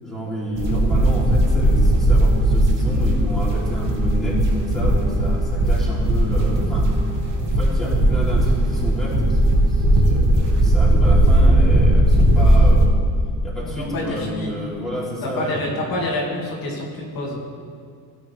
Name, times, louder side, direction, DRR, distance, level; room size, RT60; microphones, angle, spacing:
voice 1, 0.0-6.9 7.3-12.9 13.4-15.6, equal, ahead, -8 dB, 3.5 m, -29 dB
sound 1, 0.6-12.9, right 1 dB, 50° right, 2.1 m, -17 dB
voice 2, 13.6-14.5 15.2-17.4, left 1 dB, 55° left, -4 dB, 2.5 m, -27 dB
16.5 x 9.0 x 3.5 m, 2.2 s
cardioid pair, 135°, 41 cm